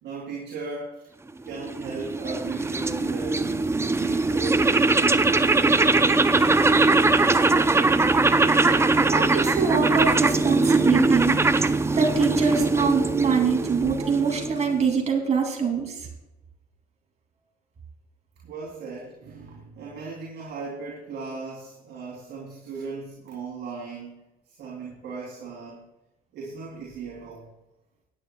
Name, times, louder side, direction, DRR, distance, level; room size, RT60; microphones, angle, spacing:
voice 1, 0.0-1.1 1.4-7.3 18.4-24.2 24.6-25.8 26.3-27.5, right 4 dB, 60° right, -5 dB, 3.2 m, -37 dB
sound 1, 1.5-14.9, right 3 dB, 15° right, 0.6 m, -21 dB
voice 2, 8.7-16.1, right 5 dB, 35° right, 1 dB, 2.6 m, -24 dB
19.0 x 9.7 x 2.3 m, 0.94 s
supercardioid pair, 80°, 20 cm